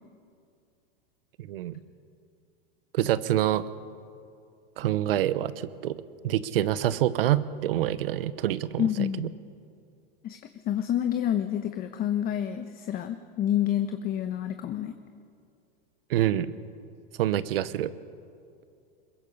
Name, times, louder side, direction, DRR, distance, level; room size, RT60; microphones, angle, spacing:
voice 1, 1.4-1.7 2.9-3.6 4.8-6.0 6.2-9.3 16.1-16.5 17.2-17.9, right 12 dB, 75° right, 16 dB, 1.0 m, -26 dB
voice 2, 8.8-9.3 10.2-10.4 10.6-14.9, left 10 dB, 30° left, 8 dB, 1.0 m, -28 dB
22.0 x 21.5 x 5.5 m, 2.4 s
hypercardioid pair, 115°, 29 cm